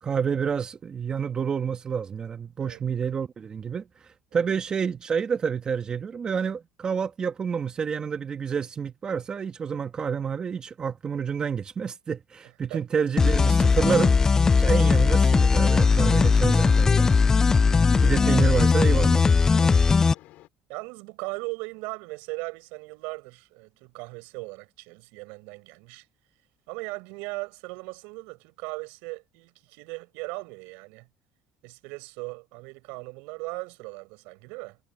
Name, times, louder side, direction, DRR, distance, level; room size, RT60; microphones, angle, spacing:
voice 1, 0.0-14.1 14.6-17.2 18.0-19.3, right 6 dB, 30° right, 2.2 m, -29 dB
sound 1, 13.2-20.1, left 5 dB, 20° left, 0.3 m, -19 dB
sound 2, 15.4-20.5, left 17 dB, 65° left, 5.0 m, -51 dB
voice 2, 19.5-19.8 20.7-26.0 26.7-31.1 31.6-34.8, right 28 dB, 75° right, 6.1 m, -38 dB
supercardioid pair, 110°, 3 cm